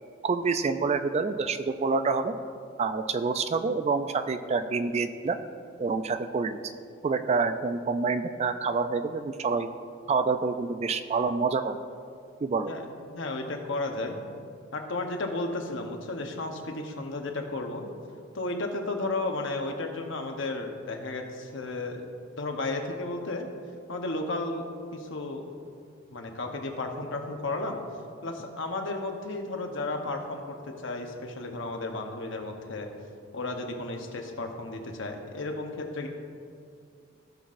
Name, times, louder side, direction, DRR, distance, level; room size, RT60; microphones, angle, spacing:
voice 1, 0.2-2.4 2.8-5.4 5.8-6.6 7.0-9.7 10.1-11.8 12.4-12.7, right 4 dB, 30° right, 10 dB, 0.3 m, -27 dB
voice 2, 12.7-14.2 14.7-17.9 18.3-22.0 22.4-23.5 23.9-24.7 24.9-25.4 26.1-27.8 28.2-32.9 33.3-36.1, left 2 dB, 65° left, 3 dB, 1.0 m, -33 dB
16.5 x 6.0 x 2.5 m, 2.4 s
head